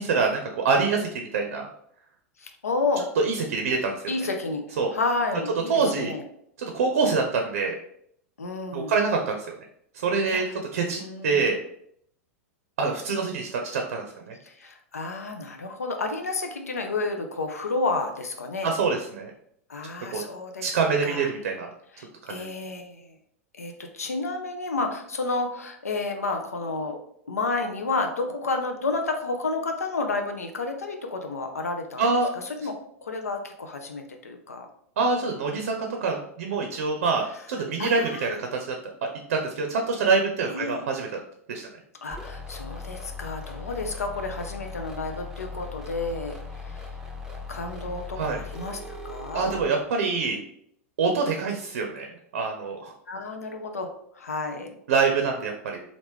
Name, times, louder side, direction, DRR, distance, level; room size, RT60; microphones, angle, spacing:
voice 1, 0.0-1.7 3.2-3.9 4.8-4.9 5.7-6.1 6.6-7.8 8.7-9.5 9.9-10.5 10.7-11.6 12.8-14.4 18.6-19.3 20.1-20.2 20.6-21.7 22.2-22.5 32.0-32.3 35.0-38.7 39.3-41.2 41.5-41.7 48.2-48.4 49.3-50.4 51.0-52.9 54.9-55.8, right 4 dB, 70° right, 3 dB, 0.5 m, -25 dB
voice 2, 2.4-3.1 4.1-6.2 8.4-8.9 10.2-10.6 11.0-11.5 14.4-18.7 19.7-20.7 21.0-21.3 21.9-23.2 23.6-32.0 32.3-34.7 37.3-38.4 40.5-40.8 42.0-46.9 47.5-49.5 53.1-54.8, left 3 dB, 85° left, 4 dB, 0.5 m, -31 dB
sound 1, 42.1-49.7, left 3 dB, 5° right, 0.6 m, -38 dB
3.1 x 2.5 x 3.5 m, 0.71 s
hypercardioid pair, 100°, 8 cm